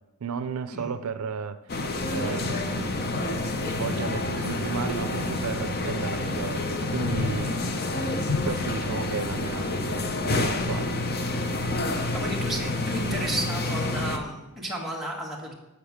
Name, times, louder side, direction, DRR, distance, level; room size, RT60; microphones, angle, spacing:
voice 1, 0.2-1.6 2.1-3.1 3.6-6.6 6.9-7.6 8.4-10.9, right 5 dB, 75° right, 11 dB, 0.5 m, -33 dB
sound 1, 1.7-14.2, left 2 dB, 45° left, 0.7 m, -28 dB
voice 2, 12.1-15.5, right 1 dB, ahead, -4 dB, 1.6 m, -33 dB
6.9 x 6.8 x 7.2 m, 1.0 s
head